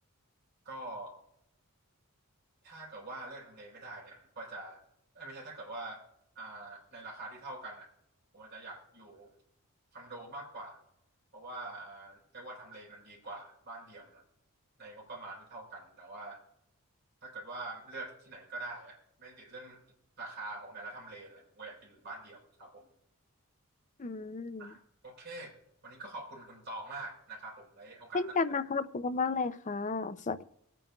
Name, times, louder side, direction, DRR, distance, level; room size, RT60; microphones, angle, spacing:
voice 1, 0.6-1.2 2.6-4.8 5.1-6.0 6.4-7.9 8.3-9.3 9.9-10.8 11.3-14.2 14.8-16.4 17.2-19.8 20.2-22.9 24.6-25.6 25.8-28.4, right 2 dB, 50° right, -1 dB, 4.2 m, -45 dB
voice 2, 24.0-24.7 28.1-30.4, left 4 dB, 35° left, 11 dB, 0.5 m, -33 dB
23.5 x 9.2 x 2.3 m, 0.75 s
head